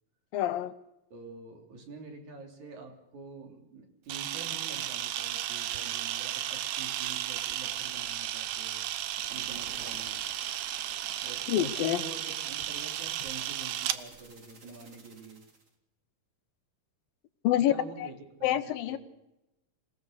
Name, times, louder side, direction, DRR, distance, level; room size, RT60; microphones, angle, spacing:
voice 1, 0.3-0.7 11.5-12.0 17.4-17.7 18.0-18.1 18.4-19.0, left 12 dB, 80° left, 13 dB, 2.8 m, -27 dB
voice 2, 1.1-8.8 9.3-10.2 11.2-15.4 17.6-18.1 18.4-19.0, right 3 dB, 55° right, 3 dB, 4.7 m, -47 dB
Camera, 4.1-14.0, right 12 dB, 90° right, 2.8 m, -34 dB
sound 1, 8.9-15.7, right 3 dB, 25° right, 2.1 m, -53 dB
27.0 x 18.5 x 6.7 m, 0.90 s
omnidirectional pair, 4.0 m